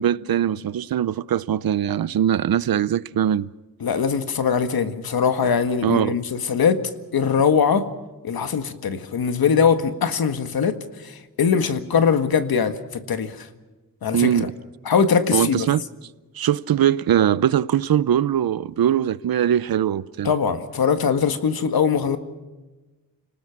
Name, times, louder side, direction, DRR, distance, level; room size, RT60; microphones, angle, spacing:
voice 1, 0.0-3.5 5.8-6.2 14.1-14.5 15.3-15.8 16.4-20.3, right 10 dB, 80° right, 0.7 m, -21 dB
voice 2, 3.8-6.8 7.1-7.8 8.2-10.7 11.0-13.5 14.0-14.5 14.8-15.7 20.2-22.2, left 6 dB, 85° left, 1.8 m, -21 dB
29.5 x 19.5 x 6.0 m
wide cardioid pair, 180°, 35 cm